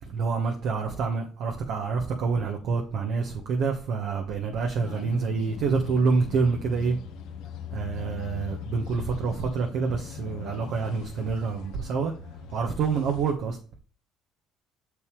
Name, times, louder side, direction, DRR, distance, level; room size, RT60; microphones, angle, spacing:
voice 1, 0.0-7.0 7.7-12.1 12.5-13.6, right 5 dB, 65° right, 1.4 m, -27 dB
sound 1, 4.8-13.2, left 7 dB, 80° left, 1.1 m, -40 dB
7.0 x 6.7 x 3.2 m
cardioid pair, 105°, 0 cm